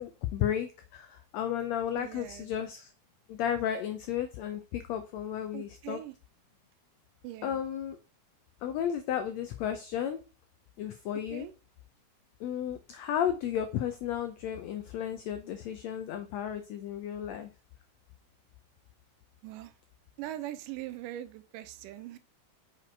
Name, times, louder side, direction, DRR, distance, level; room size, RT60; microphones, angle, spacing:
voice 1, 0.0-2.9 3.3-6.0 7.4-8.0 8.6-10.2 10.8-11.5 12.4-17.5, left 9 dB, 85° left, 1.5 m, -33 dB
voice 2, 2.0-2.5 5.5-6.1 7.2-7.6 11.3-11.5 19.4-19.7 20.2-22.2, right 14 dB, 90° right, 2.2 m, -41 dB
6.1 x 4.9 x 4.4 m
omnidirectional pair, 3.7 m